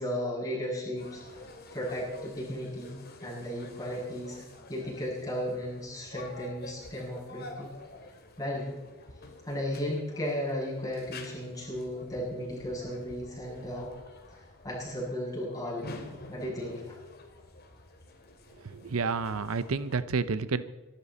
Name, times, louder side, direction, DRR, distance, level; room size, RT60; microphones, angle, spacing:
voice 1, 0.0-1.4 1.7-4.4 4.7-7.7 8.4-8.7 9.4-13.9 14.6-15.9 16.3-17.0, equal, 15° left, -5 dB, 7.0 m, -35 dB
sound 1, 1.0-20.0, left 2 dB, 50° left, 2.4 m, -49 dB
voice 2, 18.6-20.6, right 4 dB, 80° right, 14 dB, 0.7 m, -30 dB
24.0 x 12.0 x 4.2 m, 1.2 s
head